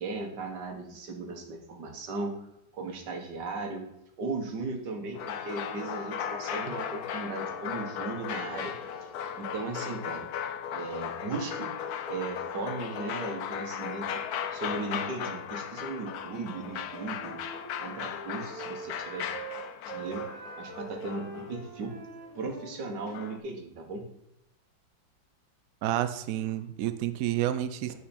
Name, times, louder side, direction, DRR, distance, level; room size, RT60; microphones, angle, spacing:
voice 1, 0.0-2.4 2.7-3.9 4.2-8.8 9.0-9.1 9.4-10.3 10.7-11.7 12.1-14.2 14.5-17.4 17.8-19.3 19.9-20.3 20.6-22.0 22.4-24.1, right 3 dB, 65° right, 3 dB, 1.8 m, -37 dB
sound 1, 5.1-21.8 23.1-23.4, left 8 dB, 70° left, 0.9 m, -37 dB
Wind instrument woodwind instrument, 16.5-23.3, right 4 dB, 35° right, 1.7 m, -44 dB
voice 2, 25.8-27.9, right 12 dB, 80° right, 11 dB, 0.7 m, -29 dB
8.3 x 4.6 x 4.2 m, 0.83 s
omnidirectional pair, 2.0 m